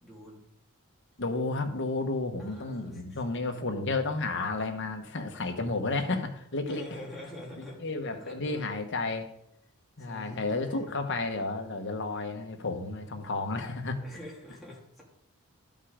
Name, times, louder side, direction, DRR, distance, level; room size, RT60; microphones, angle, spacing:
voice 1, 0.0-0.5 2.4-3.0 6.7-7.8 8.1-9.2 10.0-10.8 14.0-15.0, left 1 dB, ahead, -4 dB, 2.6 m, -45 dB
voice 2, 1.2-7.0 7.8-9.3 10.0-14.0, left 3 dB, 55° left, 5 dB, 1.2 m, -32 dB
12.5 x 5.5 x 5.0 m, 0.72 s
head